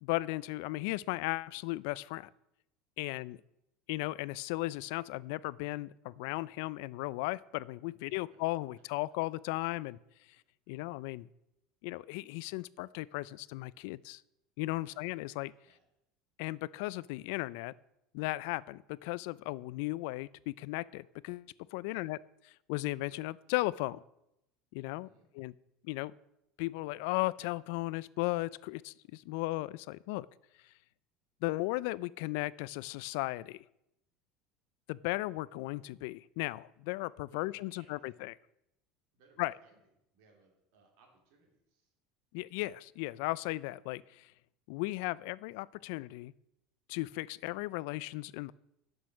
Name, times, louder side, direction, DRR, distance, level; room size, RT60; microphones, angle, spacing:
voice 1, 0.0-2.3 3.0-3.4 3.9-10.0 10.7-11.3 11.8-14.2 14.6-15.5 16.4-17.7 18.1-22.2 22.7-24.0 24.7-25.1 25.3-25.5 25.8-26.1 26.6-30.3 31.4-33.6 34.9-38.3 39.4-39.5 42.3-44.3 44.7-46.3 46.9-48.5, left 20 dB, 65° left, 20 dB, 0.3 m, -36 dB
voice 2, 8.0-8.4 10.7-10.8 14.8-15.0 15.6-15.8 21.8-22.1 24.9-25.3 37.3-38.2 39.1-39.8 40.1-41.9, right 3 dB, 65° right, 1 dB, 3.1 m, -66 dB
10.5 x 6.2 x 6.2 m, 0.85 s
cardioid pair, 165°, 0 cm